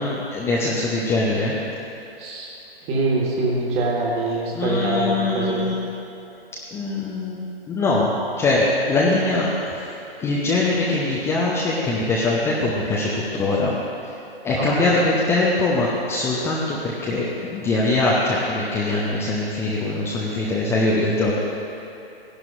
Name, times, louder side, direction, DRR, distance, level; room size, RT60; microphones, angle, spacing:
voice 1, 0.0-1.6 4.5-5.9 6.7-7.4 7.7-9.9 10.2-13.8 14.4-21.3, left 2 dB, 10° left, -5 dB, 0.6 m, -22 dB
voice 2, 2.9-5.7 14.5-14.8, right 2 dB, 20° right, -2 dB, 1.7 m, -24 dB
16.5 x 11.0 x 2.6 m, 2.9 s
figure-of-eight pair, 120°, 30 cm